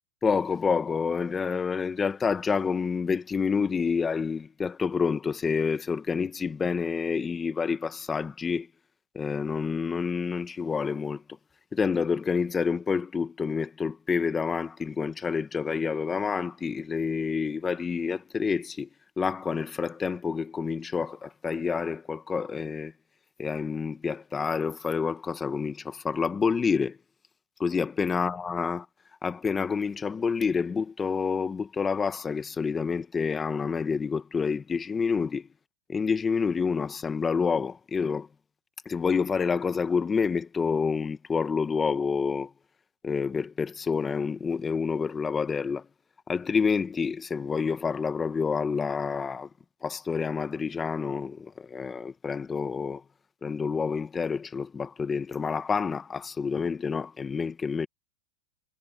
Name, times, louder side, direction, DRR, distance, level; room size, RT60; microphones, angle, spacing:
voice 1, 0.2-8.7 9.1-11.2 11.7-18.9 19.2-22.9 23.4-27.0 27.6-28.8 29.2-35.5 35.9-38.3 38.8-42.5 43.0-45.8 46.3-49.5 49.8-53.0 53.4-57.9, left 5 dB, 20° left, 1.5 m, -28 dB
supercardioid pair, 120°, 0 cm